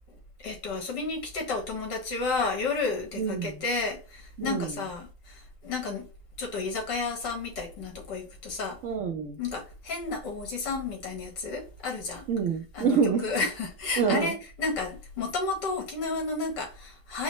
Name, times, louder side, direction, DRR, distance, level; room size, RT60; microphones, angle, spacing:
voice 1, 0.4-6.1 6.4-8.8 9.4-12.3 12.7-17.2, left 3 dB, 75° left, 2.1 m, -32 dB
voice 2, 3.2-3.6 4.4-4.9 8.8-9.4 12.3-13.3 14.0-14.3, right 6 dB, 70° right, 0.7 m, -27 dB
5.0 x 2.0 x 3.0 m
omnidirectional pair, 1.9 m